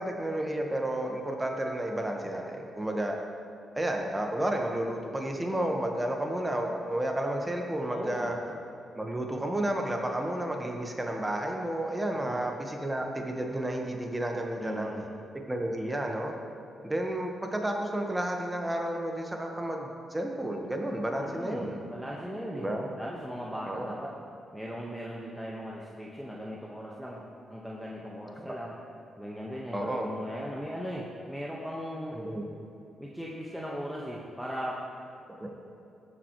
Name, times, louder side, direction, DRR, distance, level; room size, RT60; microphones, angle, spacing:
voice 1, 0.0-3.2 3.7-8.4 8.9-14.9 15.5-16.3 16.8-21.8 22.5-22.9 23.7-23.9 28.4-28.5 29.7-30.1 32.1-32.4 35.4-35.5, right 1 dB, 20° right, 2 dB, 1.5 m, -31 dB
voice 2, 7.9-8.3 12.1-12.4 14.6-15.1 21.1-22.7 23.0-24.1 24.5-27.2 27.5-28.8 29.2-32.2 33.0-34.8, equal, ahead, -4 dB, 1.5 m, -38 dB
14.5 x 8.1 x 3.2 m, 2.7 s
supercardioid pair, 50°, 0 cm